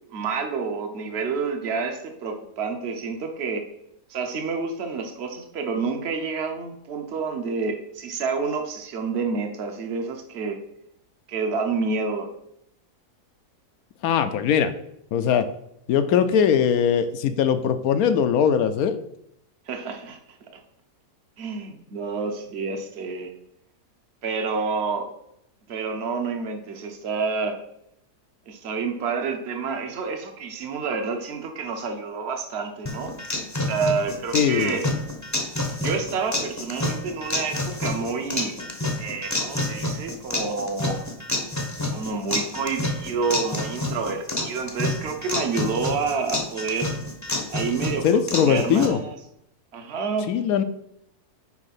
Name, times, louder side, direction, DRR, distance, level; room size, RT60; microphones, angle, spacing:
voice 1, 0.1-3.7 4.1-10.6 11.3-12.3 19.7-20.2 21.4-23.3 24.2-25.1 25.7-27.6 28.5-33.1 33.6-34.9 35.8-38.6 39.0-41.0 41.9-46.9 47.5-49.1 49.7-50.3, right 4 dB, 45° right, 5 dB, 1.1 m, -28 dB
voice 2, 14.0-14.7 15.1-15.5 15.9-19.0 34.3-34.8 48.0-49.0 50.3-50.6, left 8 dB, 70° left, 11 dB, 1.1 m, -21 dB
sound 1, 32.9-48.9, left 1 dB, 15° left, 0.7 m, -29 dB
6.3 x 4.8 x 5.9 m, 0.75 s
omnidirectional pair, 1.7 m